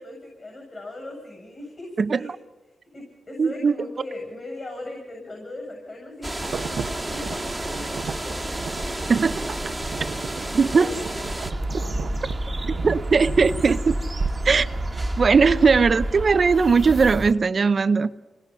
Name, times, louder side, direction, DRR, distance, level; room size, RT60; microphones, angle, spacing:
voice 1, 0.0-2.3 2.9-8.4 10.8-10.9 12.7-12.9 13.2-13.3, left 2 dB, 40° left, 7.9 m, -39 dB
voice 2, 2.0-2.4 3.4-3.7 9.1-9.4 10.5-10.9 12.8-13.9 14.4-14.7 15.2-18.1, right 5 dB, 50° right, 0.8 m, -19 dB
sound 1, 6.2-11.5, right 1 dB, 5° right, 1.7 m, -31 dB
Insect / Thunder / Rain, 6.4-17.3, right 6 dB, 75° right, 1.0 m, -36 dB
sound 2, 11.5-17.3, right 1 dB, 25° right, 1.6 m, -29 dB
27.0 x 20.5 x 5.8 m
cardioid pair, 70°, 0 cm